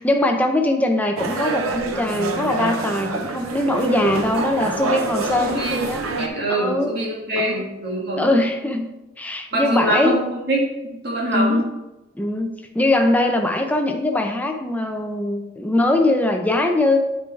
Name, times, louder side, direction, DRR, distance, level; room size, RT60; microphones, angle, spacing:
voice 1, 0.0-6.0 6.5-6.9 7.4-7.7 8.2-8.9 9.2-10.1 11.3-11.7 12.1-17.0, left 1 dB, 10° left, 4 dB, 0.6 m, -21 dB
sound 1, 1.2-6.3, right 3 dB, 90° right, 0.7 m, -26 dB
voice 2, 5.4-5.8 6.2-8.3 9.5-10.7 11.0-11.6, right 1 dB, 50° right, -3 dB, 1.7 m, -23 dB
8.7 x 4.7 x 3.3 m, 1.0 s
head